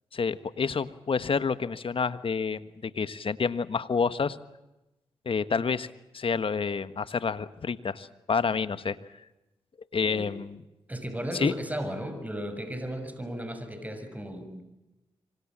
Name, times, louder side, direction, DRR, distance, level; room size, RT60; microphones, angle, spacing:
voice 1, 0.1-4.4 5.2-5.9 6.1-9.0 9.9-10.6 11.3-11.5, left 5 dB, 55° left, 13 dB, 1.5 m, -28 dB
voice 2, 10.9-14.6, equal, 15° right, 9 dB, 6.5 m, -35 dB
26.0 x 25.5 x 7.6 m, 0.98 s
supercardioid pair, 50°, 11 cm